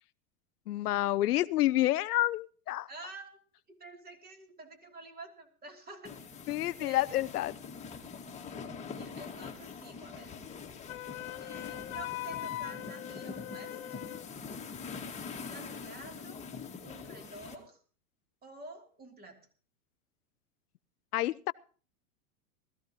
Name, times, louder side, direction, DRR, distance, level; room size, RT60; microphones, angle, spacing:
voice 1, 0.7-2.9 6.5-7.5 21.1-21.5, left 15 dB, 90° left, 0.7 m, -29 dB
voice 2, 2.9-3.4 3.7-6.2 6.8-7.2 9.0-10.4 11.4-13.8 15.3-16.5 16.8-17.8 18.4-19.4, right 2 dB, 20° right, 3.0 m, -49 dB
sound 1, 6.0-17.5, left 5 dB, 15° left, 1.9 m, -44 dB
Wind instrument woodwind instrument, 10.9-14.3, left 15 dB, 65° left, 1.3 m, -41 dB
20.0 x 14.5 x 3.0 m
supercardioid pair, 135°, 44 cm